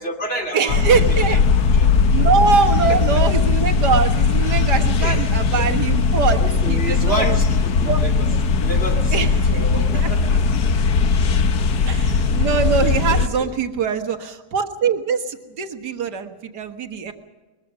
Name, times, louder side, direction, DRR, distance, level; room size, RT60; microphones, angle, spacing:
voice 1, 0.0-1.4 1.7-1.9 2.9-3.2 5.0-5.7 6.4-8.3 8.6-9.2 9.4-10.4 12.8-13.5, right 1 dB, 35° left, 1 dB, 3.0 m, -30 dB
voice 2, 0.5-1.4 2.1-7.3 7.8-8.3 9.1-9.6 9.9-10.1 11.9-17.1, right 5 dB, 75° right, 7 dB, 2.1 m, -22 dB
sound 1, 0.7-13.3, left 4 dB, 70° left, 1.6 m, -18 dB
21.5 x 21.5 x 6.2 m, 1.2 s
omnidirectional pair, 1.8 m